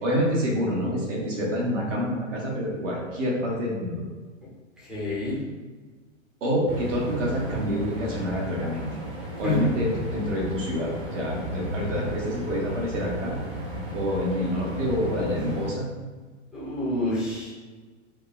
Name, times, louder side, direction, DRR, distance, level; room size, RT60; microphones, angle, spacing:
voice 1, 0.0-4.0 6.4-8.8 9.4-13.4 13.9-15.9, equal, 70° right, -3 dB, 1.2 m, -27 dB
voice 2, 4.9-5.4 9.4-9.6 16.5-17.5, left 2 dB, ahead, -9 dB, 0.3 m, -28 dB
sound 1, 6.7-15.7, right 1 dB, 40° right, 1.0 m, -34 dB
4.9 x 2.1 x 2.3 m, 1.4 s
figure-of-eight pair, 110°, 39 cm